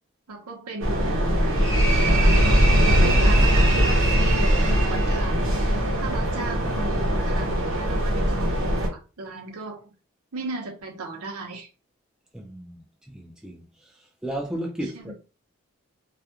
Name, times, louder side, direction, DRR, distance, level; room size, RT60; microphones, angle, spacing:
voice 1, 0.3-1.4 2.0-2.6 3.0-5.5 6.0-8.9 9.2-9.8 10.3-11.7 14.9-15.1, right 3 dB, 90° right, 0.8 m, -36 dB
sound 1, 0.8-8.9, equal, 60° right, 0.8 m, -20 dB
voice 2, 12.3-12.8 13.1-13.9 14.2-15.1, right 1 dB, 5° right, 0.4 m, -34 dB
2.4 x 2.2 x 2.8 m
head